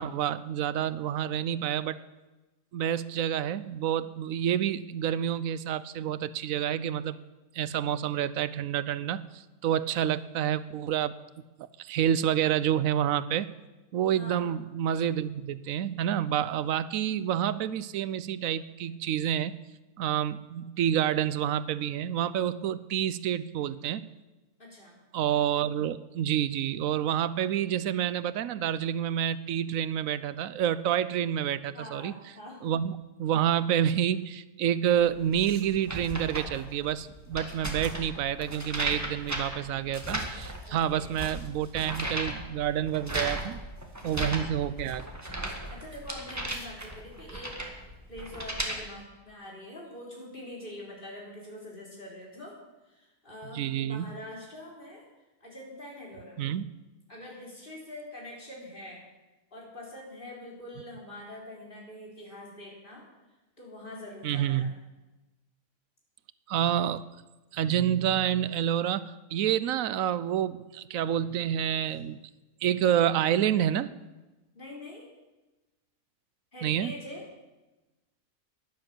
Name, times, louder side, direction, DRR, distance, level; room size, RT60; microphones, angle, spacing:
voice 1, 0.0-2.0 2.7-7.2 7.5-11.1 11.8-13.5 13.9-19.6 20.0-24.0 25.1-32.1 32.6-32.9 33.2-43.6 44.0-45.0 53.5-54.1 56.4-56.6 64.2-64.7 66.5-67.0 67.5-72.2 72.6-73.9 76.6-76.9, right 10 dB, 85° right, 16 dB, 1.0 m, -28 dB
voice 2, 14.2-14.5 24.6-25.0 31.7-32.6 40.7-41.3 44.0-44.3 45.7-47.6 48.1-52.6 52.8-55.1 55.4-56.4 57.1-59.0 59.5-63.1 63.6-64.7 74.5-75.1 76.5-77.2, left 1 dB, 40° left, -4 dB, 4.3 m, -44 dB
sound 1, 35.0-48.8, right 1 dB, 10° right, 1.7 m, -36 dB
11.5 x 10.5 x 7.8 m, 1.1 s
omnidirectional pair, 1.4 m